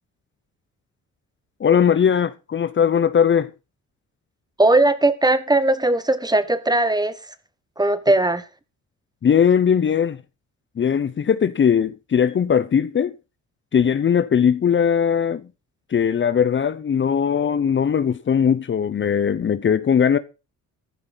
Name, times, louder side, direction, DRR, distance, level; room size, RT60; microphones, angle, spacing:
voice 1, 1.6-3.5 9.2-10.2 10.8-13.1 13.7-15.4 15.9-20.2, left 7 dB, 40° left, 0.9 m, -19 dB
voice 2, 4.6-7.1 7.8-8.4, right 2 dB, 15° right, 1.5 m, -18 dB
15.0 x 11.0 x 4.1 m
cardioid pair, 90°, 30 cm